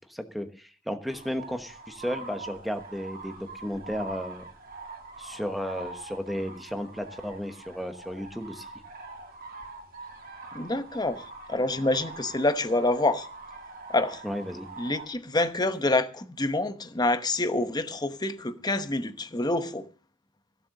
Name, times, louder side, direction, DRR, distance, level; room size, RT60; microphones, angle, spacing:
voice 1, 0.1-4.5 5.2-8.7 14.2-14.7, equal, ahead, 1.1 m, -34 dB
sound 1, 1.1-15.1, right 3 dB, 45° right, 2.4 m, -44 dB
voice 2, 10.5-11.2 11.5-13.3 13.9-14.2 14.8-19.9, left 2 dB, 20° left, 0.9 m, -27 dB
16.0 x 7.7 x 6.5 m
head